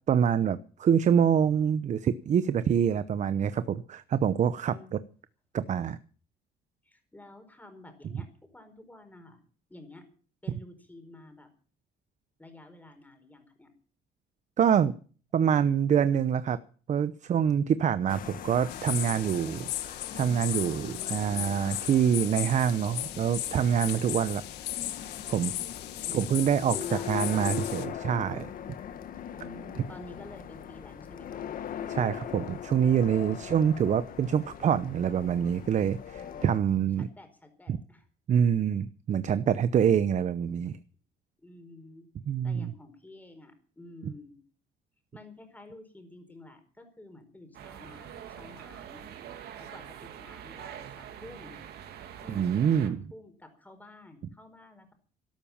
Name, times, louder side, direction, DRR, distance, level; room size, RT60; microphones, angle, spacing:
voice 1, 0.1-4.7 5.5-6.0 14.6-15.0 15.3-16.6 16.9-24.4 25.3-25.5 26.1-26.7 27.1-28.5 31.9-37.1 38.3-40.8 42.3-42.7 52.3-53.0, right 8 dB, 45° right, 14 dB, 0.8 m, -26 dB
voice 2, 4.7-5.0 6.8-9.4 9.7-10.0 10.4-11.5 12.4-13.7 20.7-21.5 26.0-26.4 26.7-27.1 29.3-31.4 36.1-36.5 37.0-38.0 41.4-42.1 42.4-44.4 45.1-49.0 49.6-51.6 52.2-52.5 52.8-54.9, left 2 dB, 10° left, 7 dB, 4.8 m, -50 dB
sound 1, 18.1-36.6, left 9 dB, 55° left, 1.7 m, -41 dB
sound 2, 18.7-27.8, left 14 dB, 85° left, 1.7 m, -37 dB
sound 3, 47.5-52.9, right 9 dB, 70° right, 2.8 m, -44 dB
12.5 x 12.0 x 7.3 m, 0.42 s
cardioid pair, 110°, 17 cm